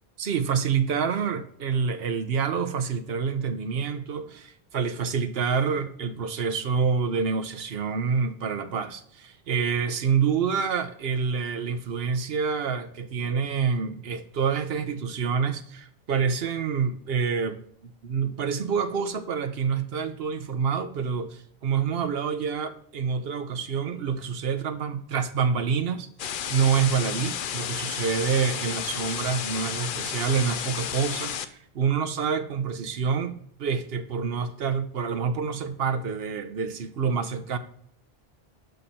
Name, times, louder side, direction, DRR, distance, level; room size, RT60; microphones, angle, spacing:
voice 1, 0.2-17.6 18.0-26.1 26.5-33.3 33.6-37.6, right 6 dB, 75° right, 1.0 m, -27 dB
sound 1, 26.2-31.5, left 8 dB, 60° left, 0.7 m, -32 dB
7.9 x 6.6 x 2.8 m
omnidirectional pair, 1.0 m